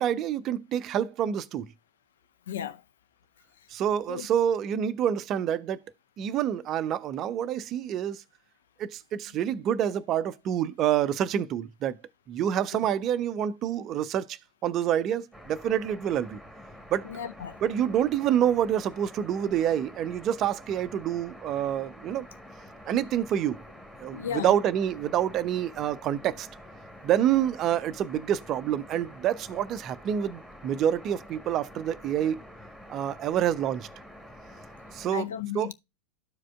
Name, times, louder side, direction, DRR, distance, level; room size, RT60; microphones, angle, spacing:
voice 1, 0.0-1.7 3.7-5.8 6.2-8.2 8.8-12.0 12.3-16.4 16.9-17.1 17.6-22.3 22.9-23.6 24.0-26.5 27.0-32.4 32.9-33.9 34.9-35.3 35.5-35.7, right 10 dB, 35° right, 0.5 m, -27 dB
voice 2, 2.5-2.8 4.1-4.3 17.0-17.6 24.1-24.5 35.1-35.7, left 9 dB, 60° left, 0.6 m, -34 dB
sound 1, 15.3-35.1, equal, ahead, 1.4 m, -48 dB
13.5 x 4.9 x 2.2 m
figure-of-eight pair, 90°, 0 cm